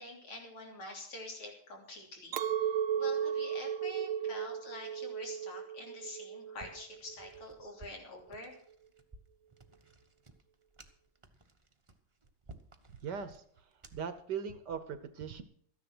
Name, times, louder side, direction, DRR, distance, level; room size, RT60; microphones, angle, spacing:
voice 1, 0.0-2.7 2.9-8.6, left 2 dB, 85° left, 0 dB, 4.1 m, -47 dB
Chink clink, 2.3-7.7, right 8 dB, 85° right, 1.7 m, -35 dB
sound 1, 6.5-14.2, right 2 dB, 25° right, 0.6 m, -57 dB
voice 2, 13.0-13.4 13.9-15.4, right 7 dB, 60° right, 11 dB, 1.3 m, -39 dB
13.5 x 10.5 x 6.1 m, 0.63 s
omnidirectional pair, 2.3 m